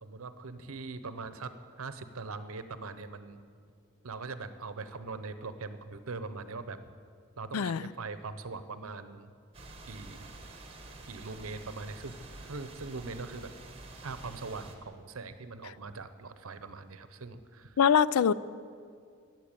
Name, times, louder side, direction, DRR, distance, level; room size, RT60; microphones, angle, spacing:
voice 1, 0.0-3.4 4.0-6.8 7.4-9.3 9.9-10.4 11.1-13.5 14.0-17.8, right 3 dB, 75° right, 11 dB, 0.8 m, -41 dB
sound 1, 9.5-14.7, right 2 dB, 25° right, 1.4 m, -48 dB
voice 2, 17.8-18.3, left 7 dB, 85° left, 18 dB, 0.4 m, -23 dB
15.0 x 7.7 x 9.0 m, 2.2 s
head